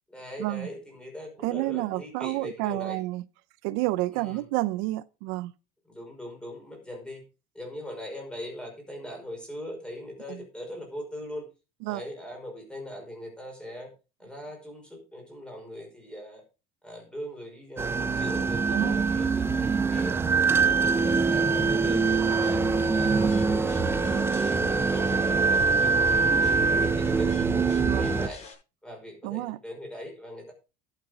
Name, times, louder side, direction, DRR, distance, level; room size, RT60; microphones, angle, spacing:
voice 1, 0.1-3.0 4.1-4.5 5.9-7.2 7.5-11.5 11.9-13.9 14.2-16.4 16.8-20.2 20.6-23.6 24.0-28.4 28.8-30.5, left 1 dB, 5° left, 5.3 m, -40 dB
voice 2, 1.4-3.2 3.6-5.5 11.9-12.0 18.7-19.0 23.2-23.3 27.8-28.1 29.2-29.6, right 19 dB, 70° right, 0.6 m, -30 dB
sound 1, 17.8-28.3, right 4 dB, 10° right, 0.6 m, -24 dB
sound 2, 20.5-28.5, left 6 dB, 35° left, 6.6 m, -42 dB
11.5 x 8.2 x 5.1 m
cardioid pair, 155°, 19 cm